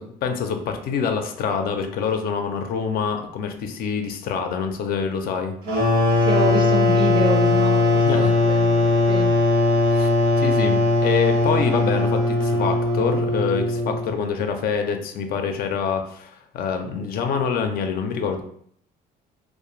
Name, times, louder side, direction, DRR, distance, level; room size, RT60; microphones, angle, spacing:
voice 1, 0.0-5.5 8.0-8.3 9.9-10.1 10.4-18.4, left 6 dB, 65° left, 6 dB, 0.4 m, -26 dB
sound 1, 5.6-14.1, left 2 dB, 90° right, 1.0 m, -19 dB
voice 2, 6.2-9.4, right 3 dB, 30° right, 4 dB, 0.4 m, -27 dB
2.4 x 2.1 x 3.0 m, 0.65 s
cardioid pair, 110°, 17 cm